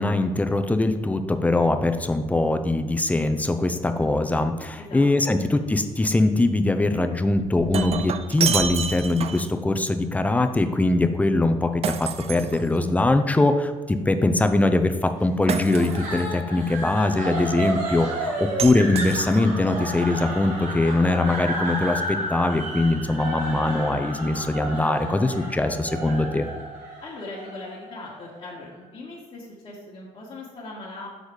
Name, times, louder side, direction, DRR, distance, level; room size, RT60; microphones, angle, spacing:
voice 1, 0.0-26.5, left 2 dB, 10° left, 7 dB, 0.6 m, -22 dB
voice 2, 4.8-5.4 27.0-31.1, left 2 dB, 40° left, -7 dB, 1.6 m, -40 dB
Shatter, 7.3-9.6 11.8-13.1 15.5-16.3 18.6-19.7, right 8 dB, 50° right, 0.4 m, -29 dB
sound 1, 15.5-28.6, right 1 dB, 80° right, 1.6 m, -32 dB
6.5 x 4.0 x 4.8 m, 1.4 s
cardioid pair, 85°, 13 cm